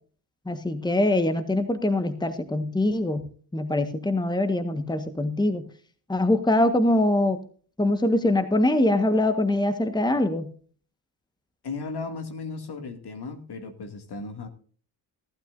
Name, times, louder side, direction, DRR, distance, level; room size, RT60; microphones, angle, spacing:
voice 1, 0.4-3.2 3.5-5.6 6.1-7.4 7.8-10.5, left 1 dB, 10° left, 9 dB, 1.6 m, -23 dB
voice 2, 11.6-14.5, left 4 dB, 55° left, 6 dB, 2.6 m, -35 dB
17.5 x 12.0 x 2.7 m, 0.43 s
hypercardioid pair, 50°, 48 cm